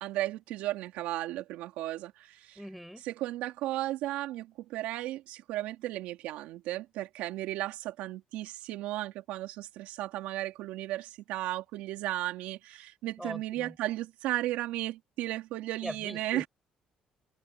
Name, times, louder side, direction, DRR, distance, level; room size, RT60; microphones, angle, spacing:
voice 1, 0.0-2.6 3.0-16.5, right 15 dB, 90° right, 3.4 m, -35 dB
voice 2, 2.6-3.0 13.2-13.7 15.8-16.5, equal, ahead, 5.2 m, -41 dB
cardioid pair, 120°, 2 cm